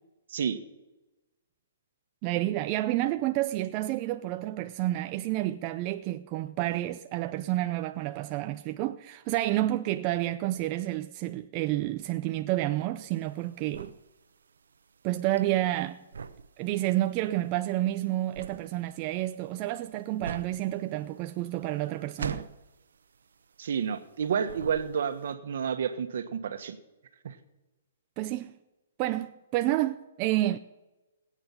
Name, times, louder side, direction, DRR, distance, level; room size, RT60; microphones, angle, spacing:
voice 1, 2.2-13.9 15.0-16.0 16.6-22.5 28.2-28.6 29.0-30.6, right 15 dB, 30° right, 0.5 m, -29 dB
sound 1, 13.0-24.2 24.4-25.3, right 6 dB, 85° right, 0.9 m, -42 dB
voice 2, 23.6-26.8 27.2-27.4, right 7 dB, 65° right, 1.4 m, -30 dB
20.0 x 9.0 x 5.8 m
hypercardioid pair, 155°, 0 cm